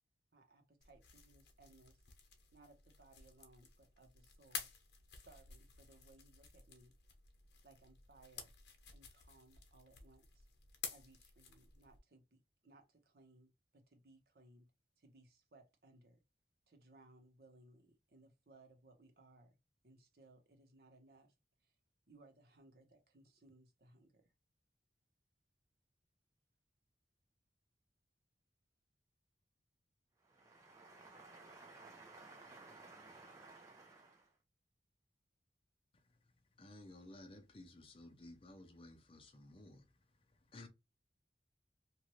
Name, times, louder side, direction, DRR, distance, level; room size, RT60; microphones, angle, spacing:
voice 1, 0.3-2.1 2.5-4.7 5.1-6.9 7.6-8.5 8.9-10.5 10.9-14.7 15.0-16.2 16.7-19.6 19.8-21.3 21.6-21.8 22.1-24.3, right 2 dB, 60° right, 0.9 m, -65 dB
sound 1, 0.8-12.0, left 6 dB, 75° left, 0.9 m, -53 dB
voice 2, 30.2-34.4, right 3 dB, 20° right, 0.4 m, -57 dB
voice 3, 36.6-40.0 40.3-40.7, left 1 dB, 30° left, 0.6 m, -56 dB
3.0 x 2.5 x 3.0 m
head